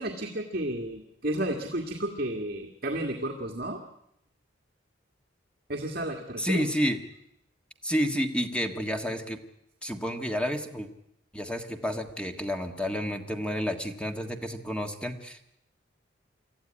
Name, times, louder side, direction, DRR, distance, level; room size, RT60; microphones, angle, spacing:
voice 1, 0.0-3.8 5.7-6.6, right 1 dB, 50° right, 2 dB, 2.0 m, -32 dB
voice 2, 6.4-7.0 7.8-9.4 9.8-10.9 11.3-15.5, equal, 5° left, 5 dB, 1.6 m, -30 dB
25.5 x 14.5 x 9.9 m, 0.80 s
head